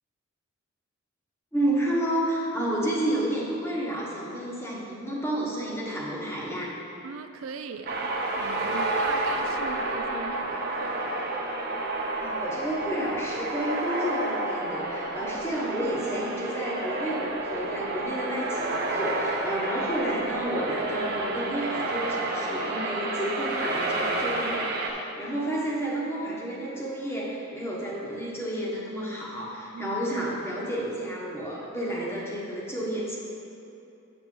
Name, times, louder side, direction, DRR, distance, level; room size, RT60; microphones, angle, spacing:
voice 1, 1.5-6.7 12.1-33.2, right 1 dB, 10° left, -4 dB, 1.1 m, -31 dB
voice 2, 7.0-11.1 15.2-15.3 29.7-30.0, right 5 dB, 75° right, 8 dB, 0.4 m, -40 dB
sound 1, 7.9-24.9, right 2 dB, 50° right, 0.8 m, -30 dB
7.8 x 7.1 x 3.8 m, 2.8 s
head